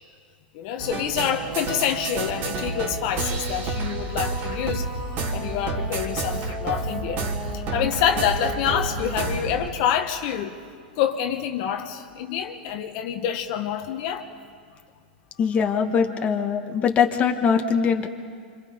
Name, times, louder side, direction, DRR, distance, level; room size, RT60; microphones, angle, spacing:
voice 1, 0.5-4.9 5.1-7.3 7.5-10.5 11.0-14.3, left 9 dB, 50° left, 5 dB, 1.5 m, -27 dB
sound 1, 0.8-9.7, right 3 dB, 40° right, 3.4 m, -29 dB
voice 2, 15.4-18.1, left 6 dB, 25° left, 3 dB, 1.7 m, -22 dB
27.0 x 26.5 x 5.3 m, 2.2 s
hypercardioid pair, 125°, 5 cm